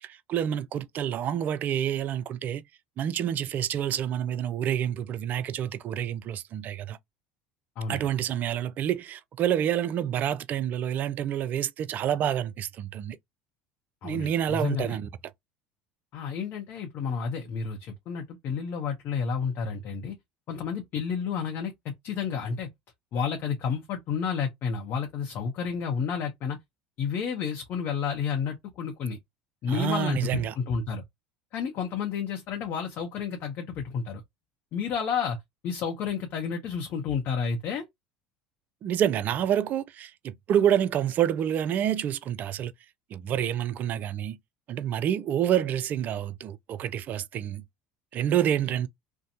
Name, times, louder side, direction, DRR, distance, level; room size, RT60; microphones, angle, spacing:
voice 1, 0.0-2.6 3.0-7.0 7.9-13.2 14.0-15.1 29.7-30.5 38.8-42.7 43.1-44.4 44.7-47.6 48.1-48.9, right 10 dB, 45° right, 0.3 m, -28 dB
voice 2, 7.8-8.1 14.0-15.0 16.1-20.2 20.5-22.7 23.1-26.6 27.0-29.2 29.6-31.0 31.5-34.2 34.7-35.4 35.6-37.9, left 6 dB, 55° left, 0.7 m, -31 dB
2.6 x 2.1 x 2.7 m
hypercardioid pair, 80°, 4 cm